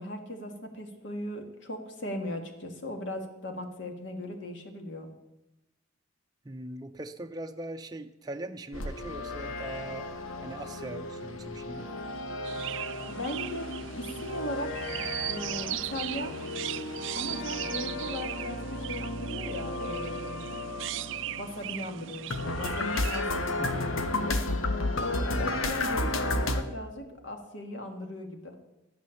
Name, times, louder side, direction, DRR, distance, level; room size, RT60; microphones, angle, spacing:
voice 1, 0.0-5.1 13.1-14.7 15.3-16.4 17.1-20.4 21.3-24.4 25.0-28.5, left 1 dB, 60° left, 4 dB, 1.8 m, -38 dB
voice 2, 6.4-10.1 10.4-11.9 23.6-23.9 25.3-25.5, right 1 dB, 20° right, 5 dB, 0.6 m, -41 dB
sound 1, 8.7-26.6, left 2 dB, 85° left, 1.2 m, -33 dB
Chirp tweet, 12.4-23.2, right 13 dB, 65° right, 0.4 m, -38 dB
11.5 x 9.6 x 7.0 m, 0.97 s
head